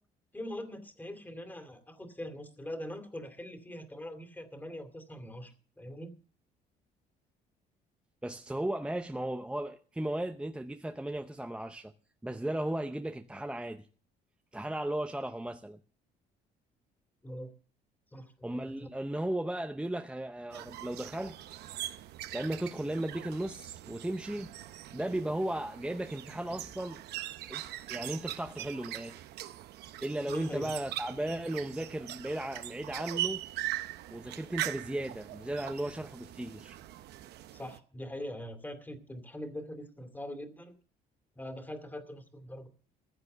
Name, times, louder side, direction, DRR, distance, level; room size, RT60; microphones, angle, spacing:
voice 1, 0.3-5.5 5.8-6.1 17.2-17.5 18.1-18.9 30.3-30.7 37.5-40.7 41.4-42.7, left 1 dB, 10° left, 2.5 m, -42 dB
voice 2, 8.2-11.9 12.2-13.9 14.5-15.8 18.4-21.4 22.3-27.0 27.5-27.6 27.9-29.2 30.0-33.4 34.1-36.8, right 1 dB, 5° right, 0.7 m, -36 dB
sound 1, 20.5-37.8, right 14 dB, 75° right, 0.9 m, -41 dB
15.0 x 8.8 x 6.7 m
cardioid pair, 110°, 17 cm